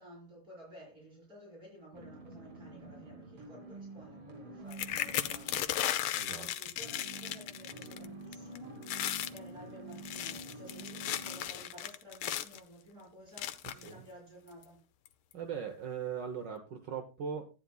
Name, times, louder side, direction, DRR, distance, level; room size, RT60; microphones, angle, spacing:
voice 1, 0.0-14.8, equal, 45° right, 5.5 m, -54 dB
sound 1, 1.9-5.8 6.8-11.4, right 2 dB, 80° right, 3.5 m, -48 dB
sound 2, 4.7-8.1 8.3-8.6 8.8-9.4 9.9-12.6 13.4-13.9 14.6-14.7 15.1-15.3, left 12 dB, 85° left, 1.5 m, -36 dB
voice 2, 6.2-6.5 13.8-14.0 15.3-17.4, right 7 dB, 60° right, 1.5 m, -39 dB
13.0 x 9.6 x 2.3 m
omnidirectional pair, 2.3 m